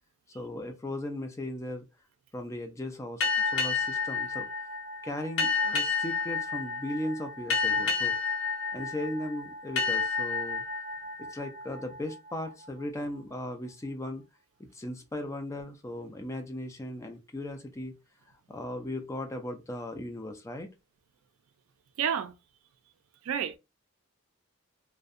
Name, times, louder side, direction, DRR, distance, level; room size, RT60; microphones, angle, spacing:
voice 1, 0.3-1.8 2.3-4.5 5.0-8.2 8.7-10.6 11.2-14.2 14.6-17.9 18.5-20.7, left 1 dB, 15° left, 0.3 m, -37 dB
sound 1, 3.2-12.5, left 5 dB, 65° left, 0.7 m, -31 dB
voice 2, 22.0-22.3 23.2-23.6, right 8 dB, 75° right, 0.3 m, -29 dB
2.6 x 2.0 x 2.4 m
head